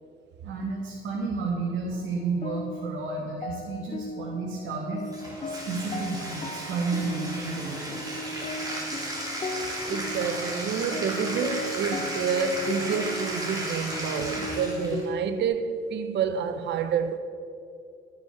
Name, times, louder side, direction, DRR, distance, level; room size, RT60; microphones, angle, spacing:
voice 1, 0.4-5.0 5.4-8.2 13.5-13.7, right 4 dB, 75° right, 1.6 m, -31 dB
sound 1, 1.9-15.5, left 2 dB, 30° left, 0.7 m, -37 dB
Bathtub (filling or washing), 5.0-15.1, right 1 dB, 20° right, 2.6 m, -35 dB
voice 2, 9.9-17.2, right 6 dB, 60° right, 0.6 m, -28 dB
12.5 x 5.8 x 5.7 m
cardioid pair, 90°, 20 cm